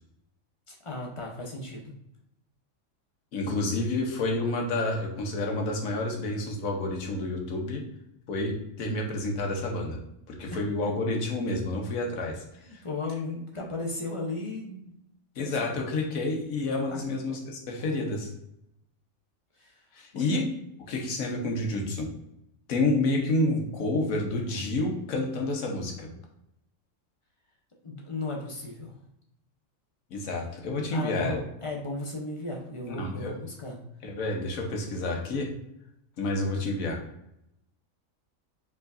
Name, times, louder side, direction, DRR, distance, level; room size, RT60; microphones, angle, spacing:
voice 1, 0.7-1.9 10.5-10.9 12.6-14.9 15.4-15.9 16.7-17.0 19.6-19.8 20.1-20.4 27.8-29.0 30.9-33.8, left 2 dB, 30° left, -2 dB, 0.8 m, -36 dB
voice 2, 3.3-7.8 8.3-10.0 10.3-12.4 15.4-18.3 19.9-20.4 20.9-22.1 22.7-26.1 30.1-31.4 32.9-33.3 34.0-35.5 36.2-37.0, left 2 dB, 85° left, 1 dB, 1.3 m, -29 dB
4.7 x 3.8 x 2.6 m, 0.81 s
omnidirectional pair, 1.4 m